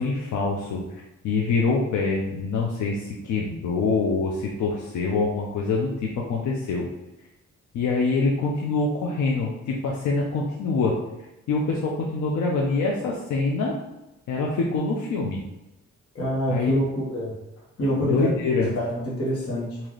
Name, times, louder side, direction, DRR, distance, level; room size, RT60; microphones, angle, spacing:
voice 1, 0.0-6.9 7.7-11.0 11.5-13.8 14.3-15.4 16.5-16.8 18.1-18.7, left 3 dB, 90° left, -2 dB, 0.6 m, -25 dB
voice 2, 16.1-17.3 17.8-18.3 18.6-19.8, equal, 55° left, -5 dB, 1.4 m, -26 dB
3.9 x 2.8 x 3.1 m, 0.96 s
wide cardioid pair, 125°, 29 cm